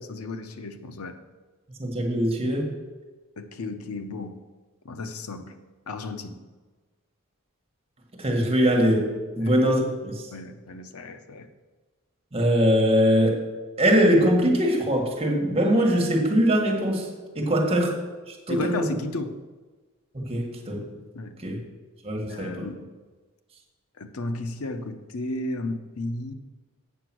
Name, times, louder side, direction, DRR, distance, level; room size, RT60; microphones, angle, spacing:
voice 1, 0.1-1.2 3.4-4.4 4.8-5.5 5.9-6.4 9.4-9.5 10.3-11.5 18.5-19.4 21.1-21.3 22.3-22.9 24.0-26.3, left 2 dB, 85° left, 9 dB, 0.8 m, -33 dB
voice 2, 1.8-2.7 8.2-10.2 12.3-13.4 13.8-17.1 17.4-17.9 18.3-18.9 20.1-20.9 21.4-21.6 22.0-22.7, equal, 25° right, 0 dB, 1.7 m, -22 dB
8.2 x 6.9 x 6.1 m, 1.3 s
head